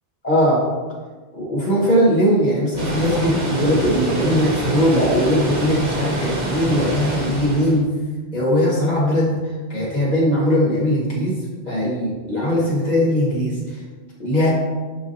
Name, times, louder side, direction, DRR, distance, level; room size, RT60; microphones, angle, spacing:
voice 1, 0.2-0.6 1.3-7.9 8.3-9.3 9.7-11.3 11.7-13.6 14.2-14.5, equal, 35° left, -6 dB, 2.1 m, -19 dB
Water, 2.8-7.8, right 1 dB, 40° right, 1.1 m, -25 dB
10.5 x 3.7 x 2.8 m, 1.4 s
omnidirectional pair, 1.2 m